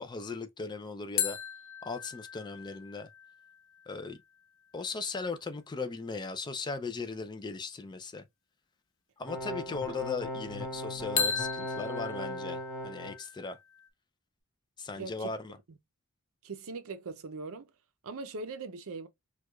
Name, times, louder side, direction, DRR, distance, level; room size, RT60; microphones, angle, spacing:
voice 1, 0.0-1.4 1.8-3.1 3.9-4.2 4.7-8.3 9.2-13.6 14.8-15.6, left 4 dB, 20° left, 0.3 m, -38 dB
sound 1, 1.2-4.7 11.2-13.9, left 7 dB, 60° left, 0.7 m, -37 dB
sound 2, 9.3-13.2, equal, 5° left, 1.6 m, -38 dB
voice 2, 15.0-15.3 16.4-17.7 18.0-19.1, right 4 dB, 65° right, 0.6 m, -40 dB
4.5 x 2.3 x 2.2 m
head